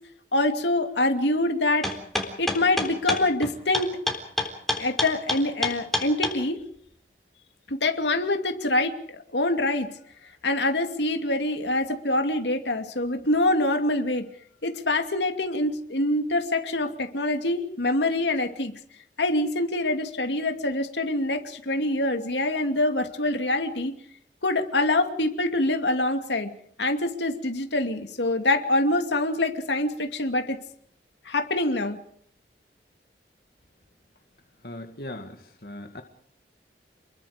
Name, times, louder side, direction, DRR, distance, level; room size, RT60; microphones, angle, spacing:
voice 1, 0.3-1.9 2.4-4.0 4.8-6.6 7.7-9.9 10.4-14.3 14.6-18.7 19.2-23.9 24.4-26.5 26.8-30.6 31.2-32.0, left 2 dB, 85° left, 6 dB, 2.5 m, -25 dB
sound 1, 1.8-6.3, left 1 dB, ahead, 3.8 m, -26 dB
voice 2, 34.6-35.4 35.6-36.0, left 1 dB, 60° left, 5 dB, 2.0 m, -38 dB
29.0 x 22.0 x 5.1 m, 0.62 s
head